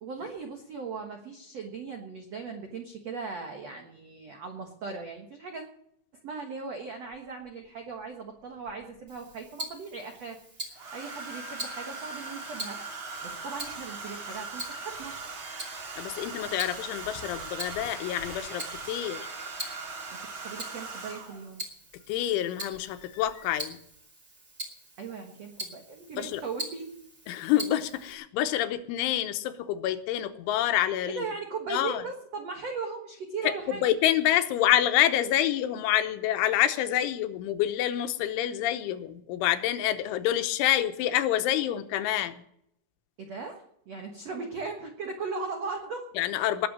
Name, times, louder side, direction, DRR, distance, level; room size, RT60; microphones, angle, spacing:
voice 1, 0.0-5.6 6.2-15.1 20.1-21.6 25.0-26.9 31.1-33.8 43.2-46.0, right 4 dB, 85° right, 3 dB, 1.4 m, -38 dB
Domestic sounds home sounds, 7.1-7.2 8.7-9.3 10.7-21.5 22.7-23.0 23.3-23.6, right 3 dB, 40° right, 2.7 m, -40 dB
Tick-tock, 9.1-28.1, right 1 dB, 20° right, 1.8 m, -44 dB
voice 2, 16.0-19.3 22.1-23.8 26.2-26.4 27.3-31.2 31.7-32.0 33.4-42.4 46.2-46.7, left 12 dB, 85° left, 10 dB, 3.3 m, -27 dB
20.0 x 7.1 x 7.4 m, 0.73 s
omnidirectional pair, 5.5 m